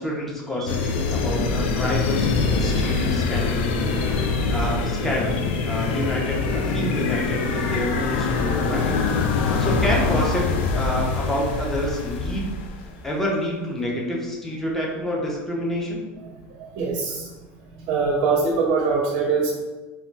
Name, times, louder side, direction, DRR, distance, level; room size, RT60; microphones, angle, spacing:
voice 1, 0.0-3.9 4.5-8.9 9.6-10.5 10.8-12.5 13.0-16.0, left 1 dB, 5° left, -3 dB, 0.5 m, -28 dB
sound 1, 0.7-13.0, left 4 dB, 80° left, 0.4 m, -24 dB
voice 2, 16.6-17.3 17.9-19.5, right 4 dB, 50° right, -1 dB, 0.5 m, -23 dB
2.2 x 2.1 x 3.8 m, 1.2 s
supercardioid pair, 155°, 6 cm